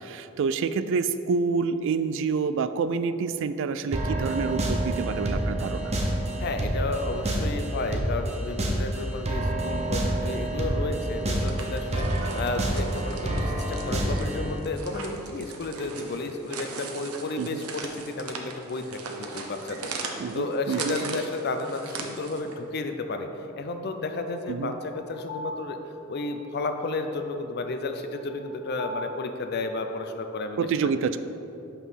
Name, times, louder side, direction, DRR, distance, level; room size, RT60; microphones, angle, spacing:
voice 1, 0.0-5.9 17.4-17.6 20.2-21.2 24.5-24.7 30.6-31.2, right 5 dB, 60° right, 12 dB, 0.3 m, -28 dB
sound 1, 3.9-14.6, right 1 dB, 30° right, 0.8 m, -28 dB
voice 2, 6.4-23.3 23.6-25.8 26.1-31.0, left 2 dB, 50° left, 7 dB, 0.5 m, -32 dB
sound 2, 11.2-22.5, right 4 dB, 90° right, 0.8 m, -39 dB
sound 3, 22.3-22.4 24.3-29.1, left 1 dB, 75° left, 1.1 m, -41 dB
5.7 x 5.5 x 6.2 m, 2.9 s
head